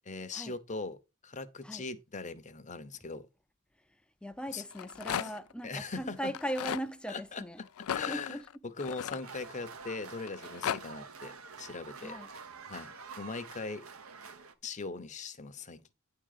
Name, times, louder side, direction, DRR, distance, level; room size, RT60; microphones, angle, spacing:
voice 1, 0.1-1.0 1.2-3.3 4.5-4.6 5.2-5.3 5.6-6.3 7.1-7.4 7.9-8.4 8.6-11.3 11.6-12.2 12.7-13.8 14.6-15.9, left 4 dB, 35° left, 0.8 m, -40 dB
voice 2, 4.2-7.6 8.1-8.5 12.0-12.3, equal, 5° left, 0.6 m, -39 dB
Rattle, 4.6-5.5 6.3-6.9 7.8-9.7 10.3-10.8, left 9 dB, 85° left, 0.4 m, -36 dB
sound 1, 9.2-14.5, right 5 dB, 75° right, 1.2 m, -48 dB
9.8 x 3.8 x 6.7 m
head